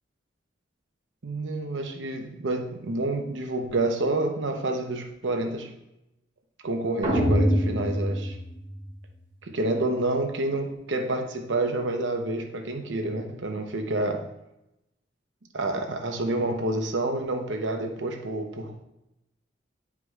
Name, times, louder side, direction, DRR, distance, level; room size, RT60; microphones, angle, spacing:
voice 1, 1.2-5.7 6.6-8.4 9.4-14.3 15.5-18.7, right 2 dB, 80° right, 4 dB, 0.9 m, -28 dB
sound 1, 7.0-9.2, equal, 30° right, 1.3 m, -25 dB
9.4 x 4.8 x 2.4 m, 0.89 s
head